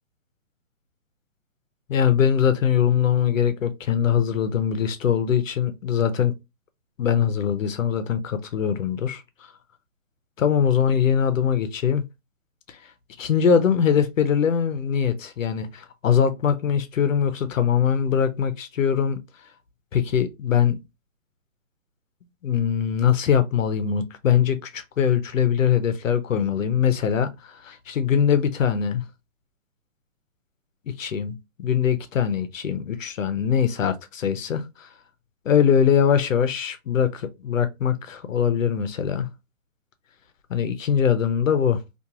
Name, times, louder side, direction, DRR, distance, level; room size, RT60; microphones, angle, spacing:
voice 1, 1.9-6.3 7.0-9.2 10.4-12.0 12.7-12.8 13.2-19.2 19.9-20.8 22.4-29.0 30.9-34.9 35.5-39.3 40.5-41.8, left 8 dB, 70° left, 0.6 m, -22 dB
2.9 x 2.4 x 2.3 m
hypercardioid pair, 175°, 40 cm